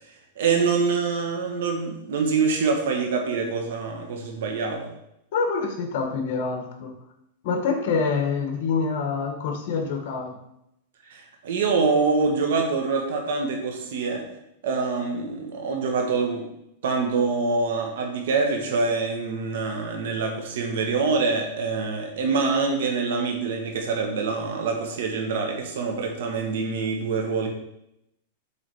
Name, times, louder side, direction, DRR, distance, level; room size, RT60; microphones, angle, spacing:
voice 1, 0.4-4.9 11.1-14.3 14.6-16.5 16.8-27.5, right 4 dB, 70° right, 2 dB, 1.7 m, -25 dB
voice 2, 5.3-6.9 7.4-10.4, left 5 dB, 55° left, 3 dB, 1.7 m, -26 dB
7.4 x 3.9 x 5.0 m, 0.82 s
supercardioid pair, 150°, 0 cm